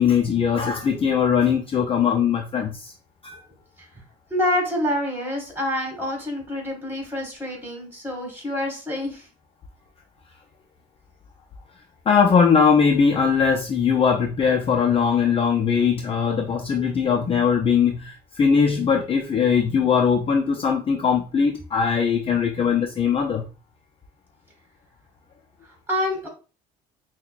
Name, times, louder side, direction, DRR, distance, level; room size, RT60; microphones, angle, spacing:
voice 1, 0.0-2.9 3.2-3.4 12.1-23.4, left 6 dB, 35° left, 2 dB, 0.4 m, -20 dB
voice 2, 4.3-9.3 25.6-26.3, left 1 dB, 15° right, -1 dB, 1.9 m, -27 dB
5.6 x 2.2 x 2.4 m, 0.34 s
cardioid pair, 110°, 17 cm